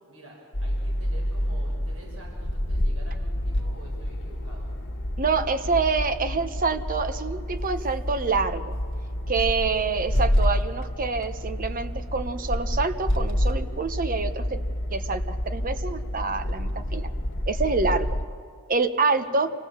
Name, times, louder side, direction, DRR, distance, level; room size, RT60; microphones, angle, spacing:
voice 1, 0.0-4.7 19.2-19.4, equal, 70° right, -1 dB, 5.8 m, -48 dB
sound 1, 0.5-18.2, equal, 60° left, 1.6 m, -28 dB
voice 2, 5.2-8.8 9.3-14.6 14.9-17.1 17.5-18.2 18.7-19.5, right 4 dB, 40° right, 10 dB, 1.0 m, -26 dB
27.0 x 17.0 x 7.2 m, 2.1 s
head